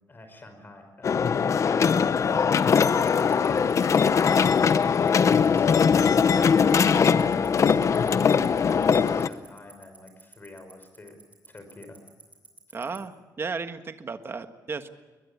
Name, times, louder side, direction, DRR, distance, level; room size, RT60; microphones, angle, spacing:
voice 1, 0.1-2.4 8.1-11.2 11.5-12.0 12.7-12.9, left 2 dB, 30° left, 7 dB, 5.3 m, -47 dB
sound 1, 1.0-9.3, left 6 dB, 45° left, 0.8 m, -21 dB
Tick-tock, 3.1-13.0, right 3 dB, 20° right, 7.0 m, -47 dB
voice 2, 12.7-14.9, right 4 dB, 35° right, 9 dB, 1.5 m, -34 dB
21.5 x 21.5 x 8.5 m, 1.2 s
cardioid pair, 120°, 7 cm